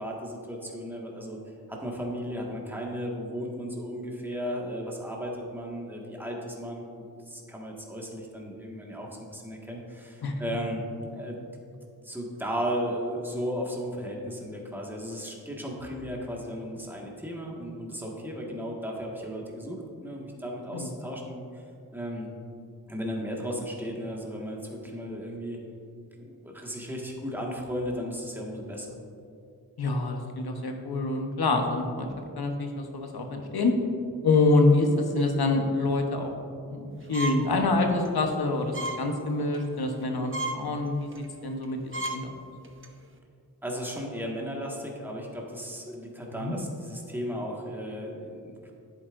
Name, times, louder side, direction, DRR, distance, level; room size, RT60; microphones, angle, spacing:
voice 1, 0.0-1.4 1.7-10.8 11.1-11.4 12.0-21.6 21.9-22.3 22.9-25.6 26.2-28.9 43.6-48.7, equal, 5° right, -2 dB, 1.7 m, -35 dB
voice 2, 29.8-32.1 32.4-33.7 34.2-36.3 36.7-42.3 46.4-46.5, left 2 dB, 75° left, 3 dB, 1.1 m, -26 dB
sound 1, 37.1-37.5 37.9-38.1 38.7-39.0 39.4-39.6 40.0-40.1 40.3-40.6 41.1-41.3 41.6-41.7 41.9-42.2 42.6-42.9, right 1 dB, 35° right, 0.9 m, -33 dB
10.5 x 8.3 x 2.6 m, 2.5 s
cardioid pair, 40°, 38 cm